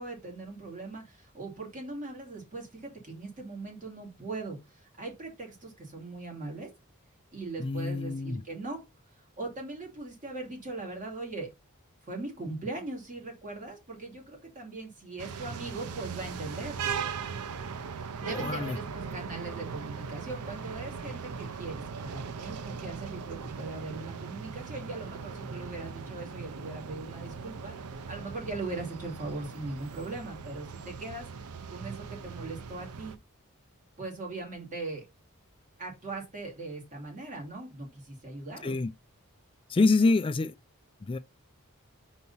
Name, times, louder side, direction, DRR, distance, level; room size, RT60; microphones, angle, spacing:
voice 1, 0.0-6.7 7.3-8.8 9.4-11.5 12.0-16.8 18.2-27.8 28.1-31.3 31.7-33.2 34.0-35.1 35.8-38.8 39.7-40.2, right 3 dB, 35° right, 2.6 m, -40 dB
voice 2, 7.6-8.4 18.3-18.8 38.6-38.9 39.7-40.5 41.1-41.2, left 3 dB, 25° left, 0.3 m, -26 dB
sound 1, 15.2-33.2, right 5 dB, 90° right, 0.6 m, -39 dB
4.6 x 4.1 x 5.5 m
head